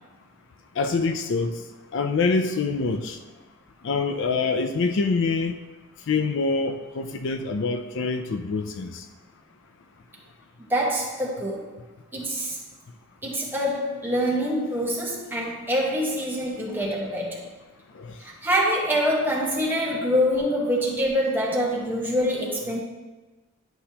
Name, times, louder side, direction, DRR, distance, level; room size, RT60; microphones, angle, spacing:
voice 1, 0.8-1.6 1.9-3.2 3.8-5.5 6.1-9.0 18.0-18.1 19.9-20.0, left 4 dB, 60° left, 7 dB, 0.4 m, -25 dB
voice 2, 10.6-11.6 12.1-12.6 13.2-17.4 18.2-22.8, equal, 10° right, -3 dB, 1.2 m, -25 dB
10.0 x 5.4 x 2.9 m, 1.2 s
head